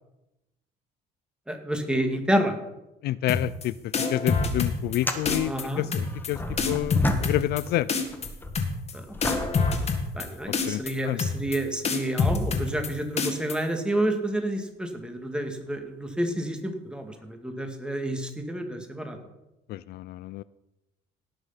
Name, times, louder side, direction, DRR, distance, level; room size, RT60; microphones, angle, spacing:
voice 1, 1.5-2.5 5.3-5.8 8.9-9.4 10.1-19.2, right 1 dB, 5° right, 5 dB, 2.0 m, -29 dB
voice 2, 3.0-3.7 4.1-7.9 10.7-11.2 19.7-20.4, left 14 dB, 70° left, 17 dB, 0.4 m, -29 dB
sound 1, 3.3-3.6 3.9-5.0 5.3-5.6 5.9-6.3 6.6-7.6 7.9-8.3 8.5-8.9 9.2-10.2 10.5-10.9 11.2-11.6 11.8-12.9 13.2-13.5, left 4 dB, 40° left, 2.1 m, -25 dB
sound 2, 3.5-3.7 4.0-4.1 4.9-7.7 8.1-10.7 11.4-11.5 15.7-15.8 17.2-17.3, left 2 dB, 10° left, 1.5 m, -34 dB
17.5 x 6.5 x 5.8 m, 0.94 s
cardioid pair, 110°, 17 cm